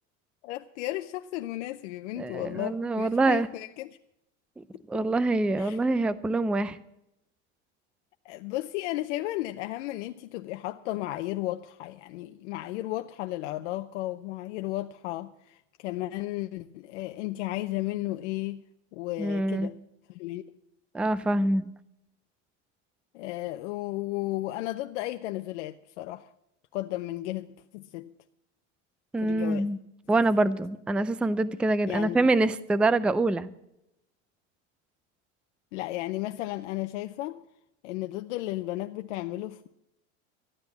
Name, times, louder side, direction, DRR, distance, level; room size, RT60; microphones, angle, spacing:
voice 1, 0.4-3.9 4.9-5.0 5.6-5.8 8.2-18.6 18.9-19.8 20.1-20.4 23.1-26.3 26.7-27.5 27.7-28.1 29.2-29.7 31.9-32.2 35.7-37.4 37.8-39.7, left 16 dB, 70° left, 0.7 m, -34 dB
voice 2, 2.2-3.5 4.6-6.8 19.2-19.7 20.9-21.7 29.1-29.8 30.1-33.5, right 2 dB, 5° right, 0.4 m, -25 dB
13.5 x 9.6 x 7.1 m
supercardioid pair, 105°, 36 cm